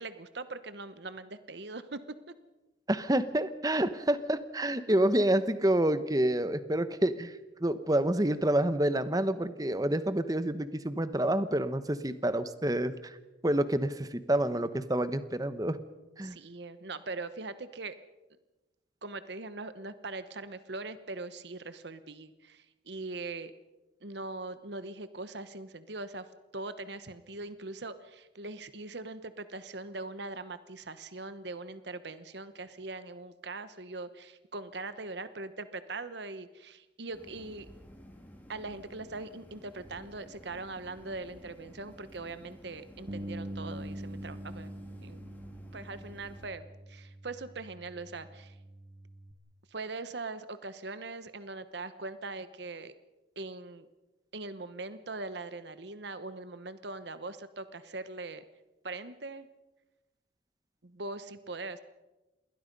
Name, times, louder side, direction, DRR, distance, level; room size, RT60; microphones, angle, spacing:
voice 1, 0.0-2.2 16.2-18.0 19.0-23.5 24.0-37.7 38.5-44.7 45.0-45.3 45.7-48.6 49.7-52.9 53.4-53.9 54.3-58.4 58.8-59.5 60.8-61.8, right 3 dB, 60° right, 13 dB, 1.1 m, -41 dB
voice 2, 2.9-13.2 13.4-15.8 16.2-16.4, right 1 dB, 20° right, 12 dB, 1.0 m, -28 dB
sound 1, 37.1-46.5, equal, 10° left, 3.2 m, -53 dB
Bass guitar, 43.1-49.3, right 1 dB, 40° right, 1.6 m, -44 dB
27.5 x 21.5 x 5.4 m, 1.1 s
head